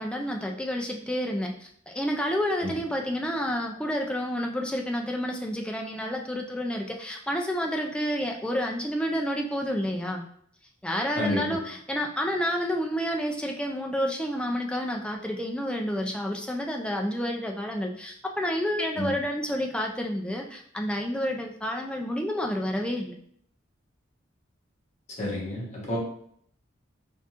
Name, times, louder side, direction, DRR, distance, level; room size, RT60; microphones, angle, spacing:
voice 1, 0.0-10.2 10.8-23.1, equal, 5° left, 1 dB, 0.4 m, -29 dB
voice 2, 25.2-26.0, left 1 dB, 35° left, -5 dB, 1.2 m, -29 dB
3.9 x 3.6 x 2.5 m, 0.65 s
head